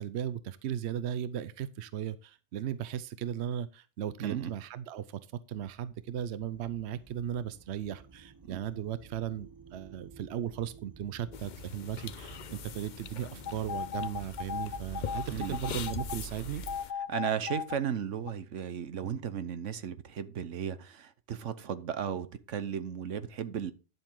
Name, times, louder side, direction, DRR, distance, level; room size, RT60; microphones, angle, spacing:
voice 1, 0.0-5.2 5.5-16.6, right 10 dB, 70° right, 0.9 m, -36 dB
voice 2, 4.2-4.5 8.5-8.6 15.3-15.6 17.1-23.7, right 8 dB, 85° right, 1.2 m, -35 dB
sound 1, 5.9-16.8, right 7 dB, 20° right, 0.7 m, -49 dB
sound 2, 11.3-16.9, left 8 dB, 50° left, 0.6 m, -43 dB
sound 3, 13.5-16.2 16.7-17.8 18.3-18.4, left 7 dB, 75° left, 1.4 m, -36 dB
10.5 x 7.3 x 3.8 m
omnidirectional pair, 1.2 m